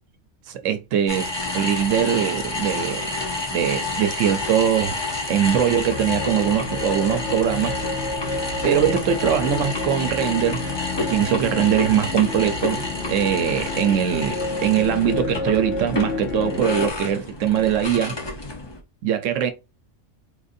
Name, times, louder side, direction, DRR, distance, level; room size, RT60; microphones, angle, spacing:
voice 1, 0.5-3.2 3.5-5.0 5.3-7.8 8.6-10.6 11.0-12.8 13.1-18.2 19.0-19.5, right 9 dB, 80° right, 1.0 m, -22 dB
sound 1, 1.1-18.8, left 2 dB, 30° left, 0.5 m, -29 dB
sound 2, 5.8-16.9, left 3 dB, 55° left, 0.9 m, -30 dB
4.3 x 2.6 x 2.4 m
omnidirectional pair, 1.3 m